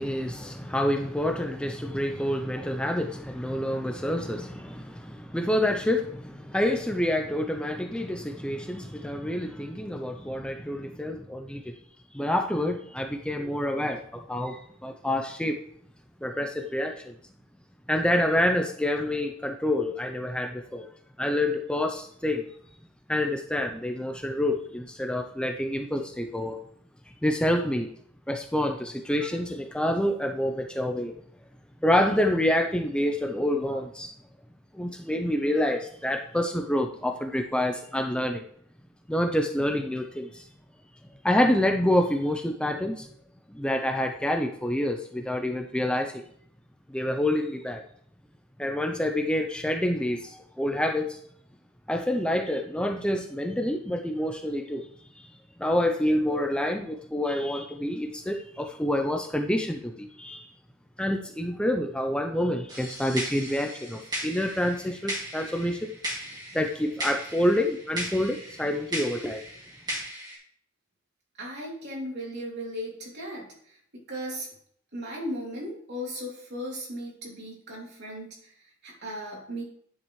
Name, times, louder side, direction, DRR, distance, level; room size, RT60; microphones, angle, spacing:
voice 1, 0.0-11.7 12.1-15.6 16.2-17.1 17.9-20.9 21.2-22.4 23.1-26.6 27.2-27.9 28.3-31.1 31.8-34.1 34.7-38.4 39.1-40.5 41.2-43.1 43.5-46.2 46.9-47.8 48.6-51.2 51.9-54.9 55.1-55.3 55.6-60.5 61.0-65.9 66.5-69.4, left 1 dB, 5° left, 4 dB, 0.5 m, -27 dB
sound 1, 62.7-70.4, equal, 20° right, 2.4 m, -37 dB
voice 2, 71.3-74.5 74.9-79.6, equal, 55° right, -3 dB, 3.0 m, -37 dB
10.0 x 7.7 x 3.2 m, 0.64 s
head